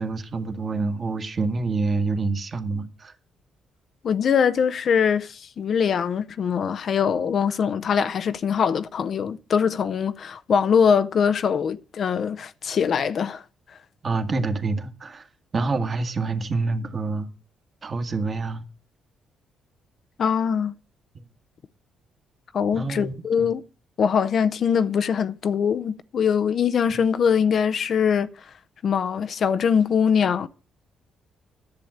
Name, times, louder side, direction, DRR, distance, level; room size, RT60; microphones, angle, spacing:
voice 1, 0.0-3.1 14.0-15.2 15.5-17.3 17.8-18.6 22.7-23.5, right 3 dB, 40° right, 1.6 m, -27 dB
voice 2, 4.0-13.4 20.2-20.7 22.5-23.6 24.0-28.3 28.8-30.5, left 7 dB, 55° left, 0.6 m, -22 dB
10.5 x 7.0 x 7.9 m
cardioid pair, 90°, 0 cm